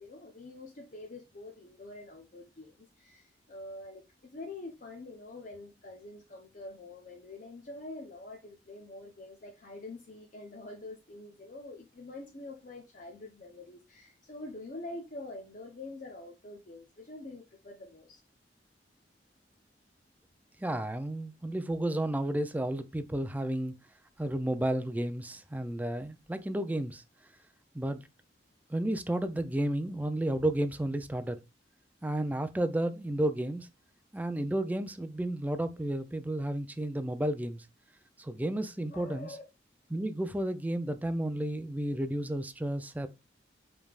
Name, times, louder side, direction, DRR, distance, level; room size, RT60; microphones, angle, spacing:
voice 1, 0.0-4.0 4.3-18.2 38.9-39.4, left 2 dB, 45° left, 0.7 m, -46 dB
voice 2, 20.6-23.7 24.2-27.0 27.7-28.0 28.7-31.4 32.0-33.7 34.1-37.6 38.2-39.3 39.9-43.1, right 1 dB, 10° right, 0.4 m, -32 dB
5.2 x 3.4 x 2.4 m
head